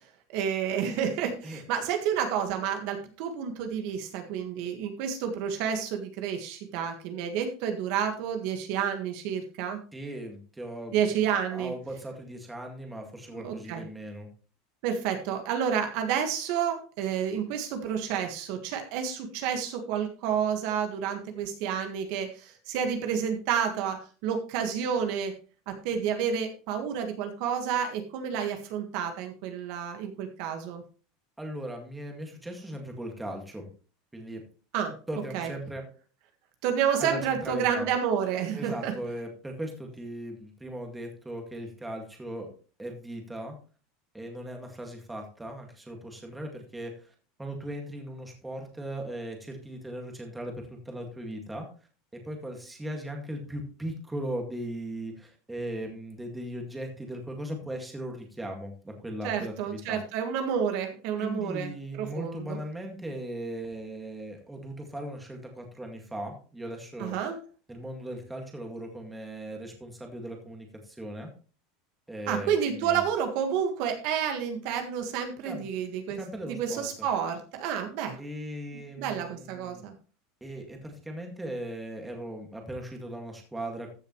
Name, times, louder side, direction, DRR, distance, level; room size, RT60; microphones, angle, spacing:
voice 1, 0.3-9.8 10.9-11.7 13.3-13.8 14.8-25.3 25.7-30.8 34.7-35.0 35.3-35.5 36.6-38.9 59.2-62.6 67.0-67.4 72.3-76.2 76.5-78.2 79.0-79.9, right 8 dB, 55° right, 5 dB, 1.6 m, -30 dB
voice 2, 1.4-1.8 9.9-11.2 11.5-14.3 31.4-33.7 34.1-34.5 35.1-35.8 37.0-37.9 38.5-42.5 42.8-43.6 44.1-51.7 52.1-60.0 61.2-67.2 67.7-71.3 72.1-73.0 75.4-75.7 76.1-77.1 78.2-79.9 80.4-83.9, right 1 dB, 5° right, 2 dB, 2.0 m, -38 dB
14.5 x 6.9 x 3.1 m, 0.37 s
supercardioid pair, 160°, 0 cm